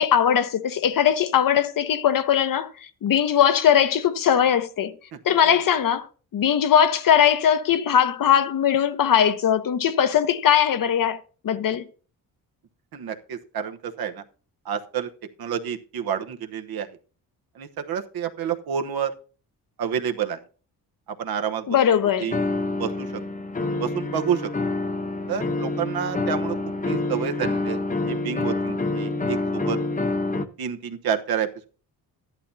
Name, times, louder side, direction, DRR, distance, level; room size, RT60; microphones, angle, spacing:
voice 1, 0.0-2.7 3.0-4.9 5.2-6.1 6.3-11.2 11.4-11.8 21.7-22.3, left 9 dB, 60° left, 1.0 m, -20 dB
voice 2, 12.9-14.2 14.6-15.1 15.4-16.9 17.6-19.1 19.8-20.4 21.2-21.8 22.2-22.4 22.8-23.2 23.8-24.5 25.3-26.6 26.9-27.8 28.1-29.8 30.6-31.7, right 8 dB, 70° right, 1.1 m, -29 dB
sound 1, 22.3-30.5, left 2 dB, 20° left, 1.1 m, -27 dB
13.0 x 11.0 x 2.7 m
cardioid pair, 80°, 38 cm